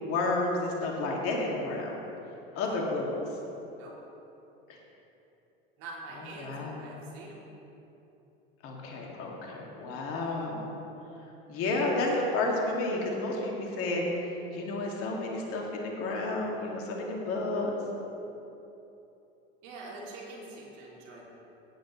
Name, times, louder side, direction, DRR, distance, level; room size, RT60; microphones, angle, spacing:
voice 1, 0.0-2.0 2.6-3.1 4.7-4.8 6.4-6.9 8.6-10.7 11.5-14.1 14.5-17.7, left 2 dB, 50° left, -1 dB, 2.2 m, -31 dB
voice 2, 5.8-7.4 19.6-21.2, right 2 dB, 60° right, -3 dB, 2.7 m, -44 dB
15.5 x 9.3 x 3.1 m, 3.0 s
hypercardioid pair, 80°, 30 cm